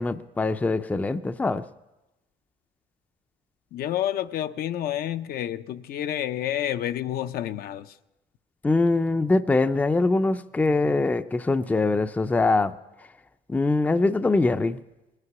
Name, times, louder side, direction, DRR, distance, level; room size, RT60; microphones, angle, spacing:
voice 1, 0.0-1.6 8.6-12.7 13.5-14.8, left 3 dB, 10° left, 0.4 m, -23 dB
voice 2, 3.7-8.0, left 11 dB, 60° left, 0.5 m, -29 dB
21.0 x 9.8 x 5.9 m
cardioid pair, 110°, 17 cm